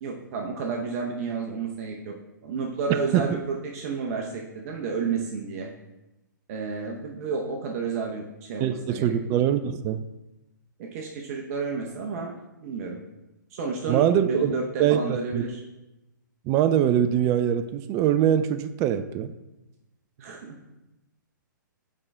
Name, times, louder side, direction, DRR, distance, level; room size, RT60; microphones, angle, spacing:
voice 1, 0.0-2.1 2.4-5.7 6.5-9.1 10.8-12.4 12.6-13.0 13.5-15.6 20.2-20.6, right 4 dB, 45° right, 1 dB, 0.9 m, -31 dB
voice 2, 2.9-3.4 8.6-10.0 13.9-14.5 14.8-15.5 16.5-19.3, right 10 dB, 25° right, 10 dB, 0.4 m, -23 dB
9.7 x 3.7 x 3.4 m, 0.96 s
hypercardioid pair, 125°, 11 cm